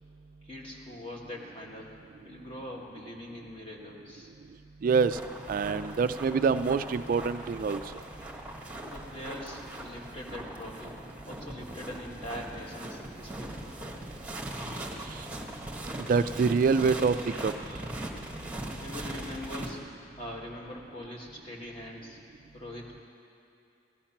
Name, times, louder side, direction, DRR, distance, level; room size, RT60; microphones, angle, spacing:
voice 1, 0.4-4.3 8.8-11.0 11.3-13.6 18.8-19.8 20.2-22.2 22.5-23.0, left 1 dB, 30° left, -3 dB, 2.1 m, -42 dB
voice 2, 4.8-5.2 5.5-7.8 15.0-15.3 16.0-17.5, right 5 dB, 50° right, 12 dB, 0.3 m, -26 dB
sound 1, 5.1-19.7, right 1 dB, 10° right, 1.3 m, -40 dB
16.5 x 13.0 x 5.8 m, 2.7 s
head